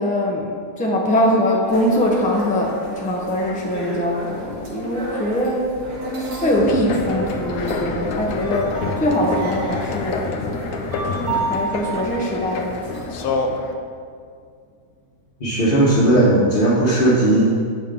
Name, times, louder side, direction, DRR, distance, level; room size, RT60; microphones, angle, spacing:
voice 1, 0.0-5.7 6.4-10.3 11.5-13.6, left 1 dB, 10° left, -1 dB, 0.4 m, -22 dB
sound 1, 1.6-13.2, right 2 dB, 80° right, 1.7 m, -31 dB
sound 2, 6.5-13.7, left 3 dB, 75° left, 1.1 m, -27 dB
voice 2, 15.4-17.5, right 1 dB, 40° left, -9 dB, 1.2 m, -16 dB
7.3 x 5.5 x 3.6 m, 2.1 s
omnidirectional pair, 1.5 m